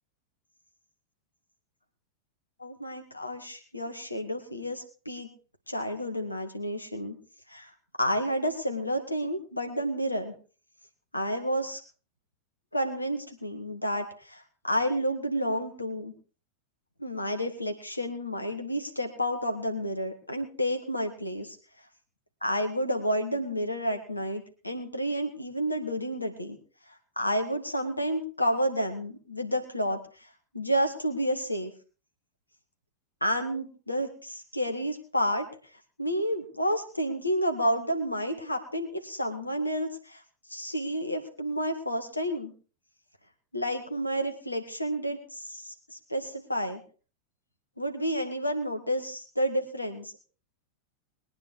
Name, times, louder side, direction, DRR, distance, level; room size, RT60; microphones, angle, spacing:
voice 1, 2.6-5.3 5.7-7.2 7.5-7.7 8.0-10.3 11.1-11.8 12.7-16.1 17.0-21.6 22.4-26.6 27.2-30.0 30.5-31.7 33.2-35.5 36.0-40.2 40.5-42.5 43.5-46.8 47.8-50.3, equal, 85° left, 6 dB, 2.0 m, -30 dB
21.0 x 9.6 x 4.7 m, 0.38 s
figure-of-eight pair, 90°, 0 cm